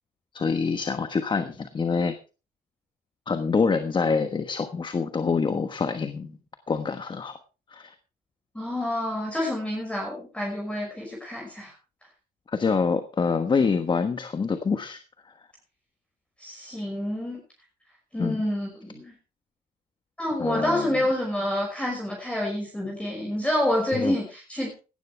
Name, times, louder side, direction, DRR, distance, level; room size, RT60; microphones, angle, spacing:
voice 1, 0.3-2.1 3.3-6.3 6.7-7.4 7.7-7.9 12.5-15.0 18.2-18.4 20.4-21.0 23.9-24.2, left 5 dB, 30° left, 9 dB, 1.3 m, -26 dB
voice 2, 8.5-11.7 16.4-17.4 18.1-19.1 20.2-24.7, left 1 dB, 5° left, -1 dB, 5.7 m, -28 dB
17.0 x 12.0 x 3.4 m, 0.33 s
cardioid pair, 110°, 17 cm